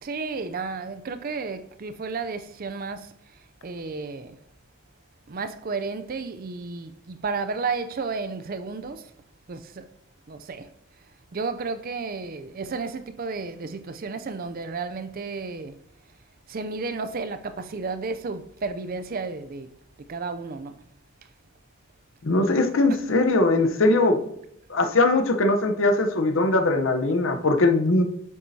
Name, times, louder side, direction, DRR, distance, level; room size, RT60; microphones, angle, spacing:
voice 1, 0.0-4.4 5.3-9.1 9.5-9.9 10.3-10.7 11.3-15.8 16.5-19.7 20.1-20.8 22.9-23.0, right 4 dB, 40° right, 0.4 m, -32 dB
voice 2, 22.2-24.3 24.7-28.0, left 2 dB, 55° left, 0.8 m, -21 dB
8.3 x 7.3 x 2.7 m
head